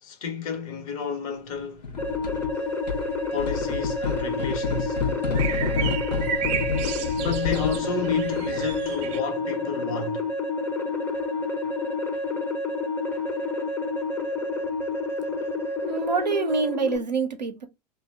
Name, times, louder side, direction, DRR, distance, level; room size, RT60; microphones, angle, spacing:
voice 1, 0.0-1.9 3.3-5.0 7.1-10.2, left 6 dB, 55° left, 0.9 m, -31 dB
sound 1, 1.8-2.5 2.9-8.9, left 4 dB, 80° left, 0.6 m, -30 dB
sound 2, 2.0-17.0, left 3 dB, 10° left, 0.5 m, -29 dB
sound 3, 2.5-9.2, right 9 dB, 50° right, 0.7 m, -35 dB
voice 2, 15.8-17.7, right 5 dB, 90° right, 0.5 m, -26 dB
2.2 x 2.0 x 3.4 m
figure-of-eight pair, 90°, 21 cm